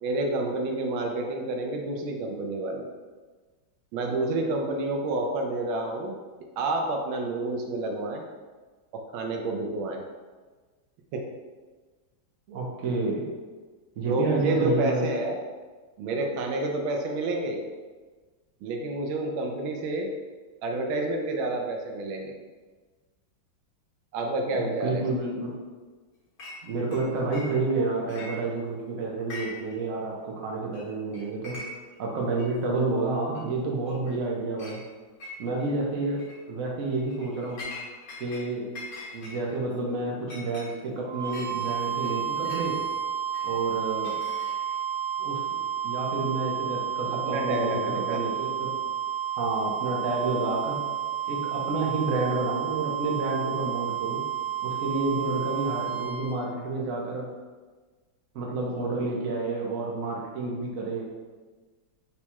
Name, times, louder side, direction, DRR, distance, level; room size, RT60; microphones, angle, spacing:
voice 1, 0.0-2.9 3.9-6.1 6.6-8.2 8.9-10.0 11.1-11.3 14.1-15.4 16.0-17.6 18.6-20.1 20.6-22.3 24.1-25.0 47.1-48.2, right 2 dB, 80° right, 2 dB, 1.4 m, -29 dB
voice 2, 12.5-13.3 14.0-15.1 24.5-25.5 26.6-31.6 32.0-34.8 35.4-36.2 36.5-37.6 38.2-38.7 39.1-42.8 43.4-44.1 45.2-45.4 45.8-48.7 49.4-50.8 51.3-54.2 54.6-57.2 58.3-61.1, right 3 dB, 60° right, -2 dB, 0.9 m, -29 dB
Chink clink, 26.4-26.6 26.9-27.8 28.1-28.8 29.2-29.8 30.0-30.1 30.7-30.9 31.1-32.0 32.4-32.5 33.4-33.5 33.9-34.2 34.6-34.8 35.2-35.7 36.1-36.4 36.9-38.5 38.8-42.7 43.3-44.8, left 2 dB, 55° left, 1.3 m, -43 dB
sound 1, 41.0-56.3, right 9 dB, 35° right, 0.8 m, -31 dB
4.1 x 2.3 x 4.4 m, 1.4 s
omnidirectional pair, 2.2 m